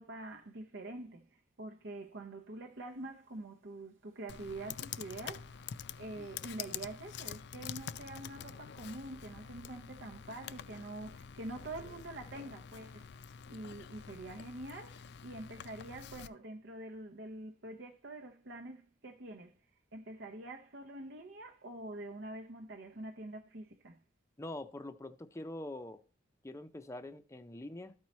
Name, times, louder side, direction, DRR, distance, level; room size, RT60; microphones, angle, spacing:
voice 1, 0.0-19.5 19.9-24.0, right 2 dB, 65° right, 0.8 m, -46 dB
Computer keyboard, 4.3-16.3, left 8 dB, 65° left, 0.4 m, -47 dB
voice 2, 24.4-26.0 26.4-27.9, left 1 dB, 15° left, 0.5 m, -44 dB
13.0 x 4.6 x 4.2 m
head